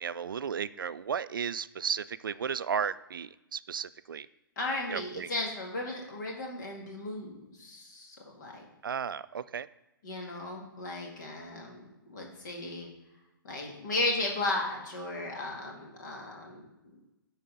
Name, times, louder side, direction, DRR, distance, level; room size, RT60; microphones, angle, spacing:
voice 1, 0.0-4.3 4.9-5.3 8.8-9.7, right 7 dB, 65° right, 15 dB, 0.4 m, -34 dB
voice 2, 4.6-7.3 7.6-8.7 10.0-11.8 12.1-12.9 13.4-16.7, left 2 dB, 50° left, 0 dB, 2.0 m, -35 dB
10.5 x 4.1 x 5.3 m, 0.94 s
figure-of-eight pair, 115°, 12 cm